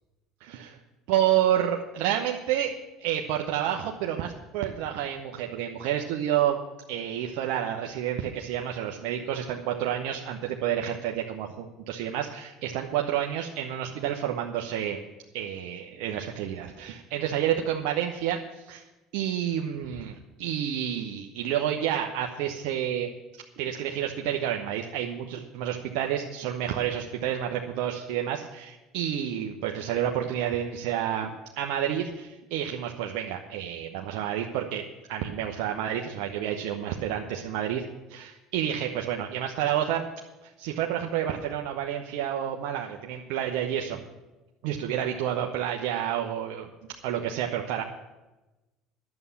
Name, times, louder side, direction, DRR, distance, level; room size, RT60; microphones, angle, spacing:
voice 1, 0.4-0.8 1.1-2.7 3.0-6.6 6.9-15.0 15.3-18.8 19.1-34.8 35.1-37.8 38.1-40.0 40.6-44.0 44.6-46.7 47.0-47.8, right 10 dB, 70° right, 1 dB, 1.0 m, -29 dB
11.0 x 7.2 x 9.7 m, 1.1 s
hypercardioid pair, 75°, 0 cm